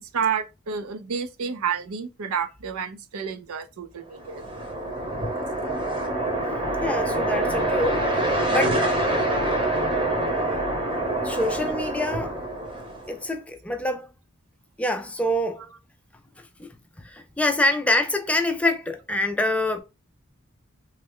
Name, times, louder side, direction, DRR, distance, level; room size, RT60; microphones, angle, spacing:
voice 1, 0.1-4.6, right 6 dB, 80° right, 0.5 m, -30 dB
sound 1, 4.1-13.2, right 1 dB, 25° right, 0.8 m, -26 dB
voice 2, 6.8-8.1 8.5-8.8 11.2-12.4 13.1-14.1 14.8-15.7 16.4-16.7 17.0-19.8, left 1 dB, 5° left, 0.3 m, -25 dB
3.1 x 2.1 x 3.6 m
head